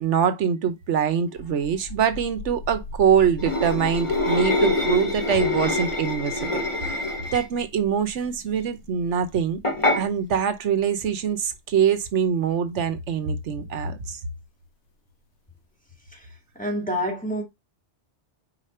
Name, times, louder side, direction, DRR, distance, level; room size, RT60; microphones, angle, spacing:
voice 1, 0.0-6.9 7.3-9.6 10.0-14.2, right 7 dB, 85° right, 1.1 m, -24 dB
sound 1, 1.3-14.7, left 3 dB, 75° left, 1.3 m, -41 dB
sound 2, 3.4-7.6 9.6-10.0, left 2 dB, 30° left, 1.1 m, -25 dB
voice 2, 16.6-17.4, equal, 5° left, 2.0 m, -28 dB
5.0 x 4.5 x 4.2 m
omnidirectional pair, 1.2 m